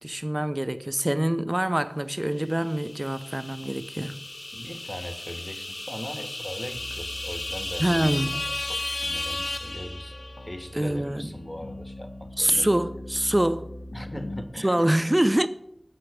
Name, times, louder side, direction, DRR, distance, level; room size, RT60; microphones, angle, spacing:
voice 1, 0.0-4.2 7.8-8.4 10.7-11.3 12.4-13.7 14.6-15.5, right 1 dB, 30° right, 0.6 m, -25 dB
sound 1, 2.5-10.5, left 2 dB, 55° left, 0.5 m, -34 dB
voice 2, 4.5-10.2 10.4-12.7 13.9-14.9, equal, 20° left, 1.3 m, -39 dB
sound 2, 6.7-14.4, left 1 dB, 75° left, 1.2 m, -41 dB
7.6 x 6.6 x 6.1 m
wide cardioid pair, 40°, 0 cm